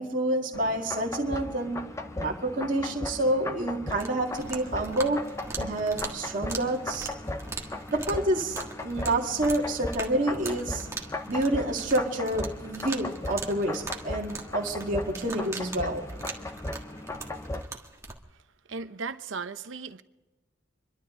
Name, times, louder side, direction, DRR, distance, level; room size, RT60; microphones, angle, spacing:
voice 1, 0.0-5.3 5.6-7.1 7.9-10.9 11.3-16.0, right 1 dB, 40° right, 2.0 m, -28 dB
sound 1, 0.5-17.6, left 2 dB, 15° left, 0.7 m, -37 dB
sound 2, 3.9-18.2, right 3 dB, 15° right, 1.5 m, -41 dB
voice 2, 18.7-20.0, right 4 dB, 75° right, 0.8 m, -36 dB
27.0 x 12.0 x 3.8 m
head